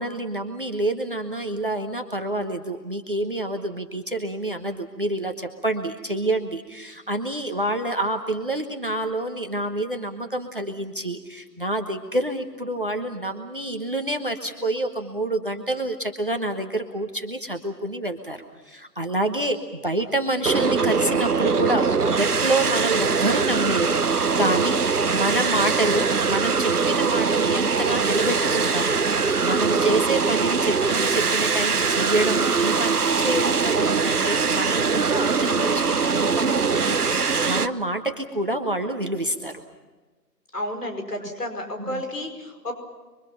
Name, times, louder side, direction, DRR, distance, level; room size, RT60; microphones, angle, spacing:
voice 1, 0.0-18.4 18.7-24.8 25.1-39.5 41.9-42.0, right 1 dB, 30° right, 6 dB, 1.2 m, -27 dB
sound 1, 20.4-37.7, right 5 dB, 65° right, 1.0 m, -22 dB
voice 2, 40.5-42.7, left 1 dB, 65° left, 4 dB, 5.2 m, -31 dB
28.0 x 24.0 x 5.8 m, 1.3 s
figure-of-eight pair, 175°, 49 cm